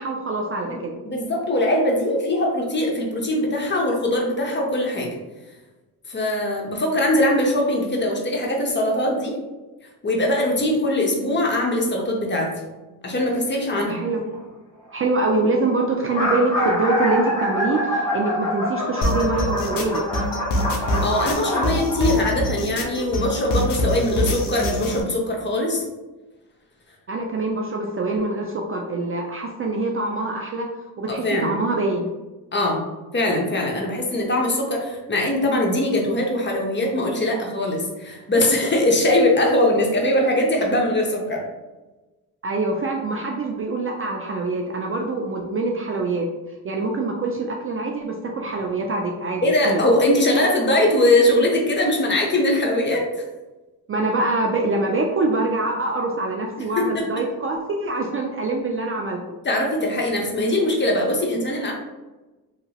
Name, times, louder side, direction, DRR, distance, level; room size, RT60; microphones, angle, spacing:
voice 1, 0.0-1.0 13.9-14.2 14.9-20.0 27.1-30.7 31.0-32.1 42.4-46.3 46.6-49.8 53.9-59.2, right 2 dB, 35° right, 1 dB, 0.4 m, -24 dB
voice 2, 0.7-5.1 6.1-9.4 10.0-12.5 13.0-14.0 21.0-25.8 31.1-31.6 32.5-32.8 33.1-41.4 49.4-53.0 56.8-57.0 59.4-61.7, left 1 dB, 25° left, -1 dB, 0.9 m, -21 dB
sound 1, 14.1-14.4 15.2-15.3 15.5-15.6 15.9-22.3, equal, 10° left, 1.4 m, -25 dB
sound 2, 19.0-25.0, left 1 dB, 50° left, 0.7 m, -25 dB
2.8 x 2.7 x 2.8 m, 1.1 s
cardioid pair, 80°, 43 cm